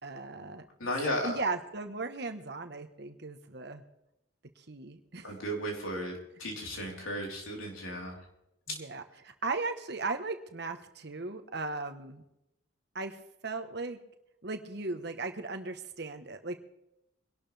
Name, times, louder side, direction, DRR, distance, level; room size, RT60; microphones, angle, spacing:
voice 1, 0.0-0.7 1.2-3.8 4.6-5.4 8.7-12.2 12.9-13.2 13.4-14.0 14.4-16.6, right 3 dB, 55° right, 6 dB, 1.3 m, -37 dB
voice 2, 0.8-1.4 5.2-6.1 6.4-8.2 8.7-8.8, equal, 85° left, -1 dB, 4.2 m, -34 dB
23.5 x 12.0 x 3.5 m, 0.85 s
head